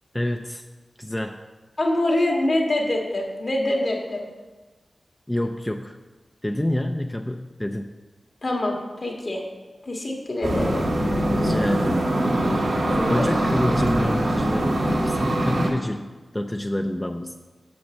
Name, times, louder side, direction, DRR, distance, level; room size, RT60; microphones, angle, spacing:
voice 1, 0.1-0.7 1.0-1.4 5.3-6.0 6.4-7.9 11.3-12.1 13.1-16.1 16.3-17.4, left 1 dB, 15° left, 5 dB, 0.4 m, -27 dB
voice 2, 1.8-4.3 8.4-9.4 9.8-10.8 12.8-13.2 13.6-13.7, left 1 dB, 55° left, 0 dB, 1.7 m, -25 dB
sound 1, 10.4-15.7, right 1 dB, 85° right, 1.6 m, -23 dB
6.0 x 5.2 x 6.9 m, 1.2 s
wide cardioid pair, 60°, 0 cm